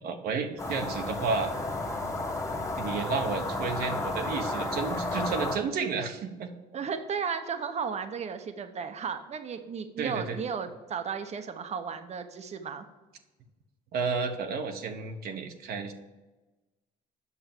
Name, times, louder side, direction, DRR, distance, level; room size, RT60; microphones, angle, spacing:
voice 1, 0.0-1.5 2.8-6.5 10.0-10.4 13.9-15.9, right 5 dB, 65° right, 4 dB, 1.1 m, -31 dB
sound 1, 0.6-5.6, left 2 dB, 15° left, 1.6 m, -32 dB
voice 2, 6.7-12.8, right 6 dB, 40° right, 8 dB, 1.0 m, -34 dB
8.2 x 6.3 x 7.3 m, 1.1 s
cardioid pair, 110°, 17 cm